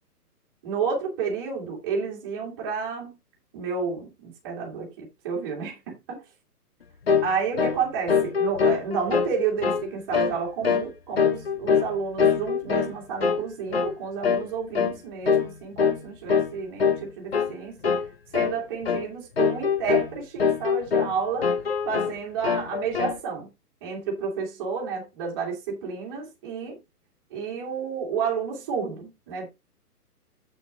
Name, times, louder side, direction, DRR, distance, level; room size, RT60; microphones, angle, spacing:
voice 1, 0.6-3.2 3.5-6.2 7.2-18.0 18.3-21.5 21.9-23.5 23.8-26.8 27.3-29.5, right 5 dB, 15° right, 2.1 m, -31 dB
sound 1, 7.1-7.3 7.6-7.8 8.1-9.3 9.6-9.9 10.1-10.4 10.6-10.9 11.2-11.9 12.2-12.9 13.2-13.4 13.7-13.9 14.2-14.5 14.7-15.0 15.3-15.5 15.8-16.0 16.3-16.5 16.8-17.0 17.3-17.5 17.8-18.1 18.3-18.6 18.8-19.0 19.4-20.1 20.4-21.1 21.4-22.1 22.4-23.2, left 6 dB, 40° left, 0.9 m, -23 dB
8.2 x 6.2 x 3.8 m
hypercardioid pair, 180°, 47 cm